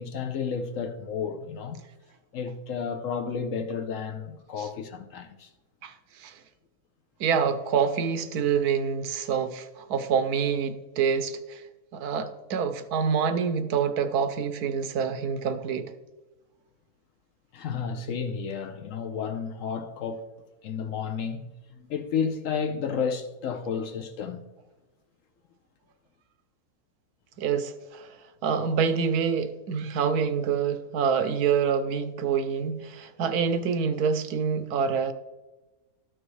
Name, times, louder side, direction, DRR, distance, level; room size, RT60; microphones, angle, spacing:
voice 1, 0.0-1.8 2.3-5.5 17.5-20.3 20.6-21.4 21.7-24.4, left 6 dB, 65° left, 0.9 m, -32 dB
voice 2, 5.8-6.3 7.2-11.6 11.9-15.9 27.4-28.1 28.4-35.1, right 6 dB, 75° right, 1.2 m, -26 dB
12.5 x 6.2 x 3.2 m
omnidirectional pair, 1.7 m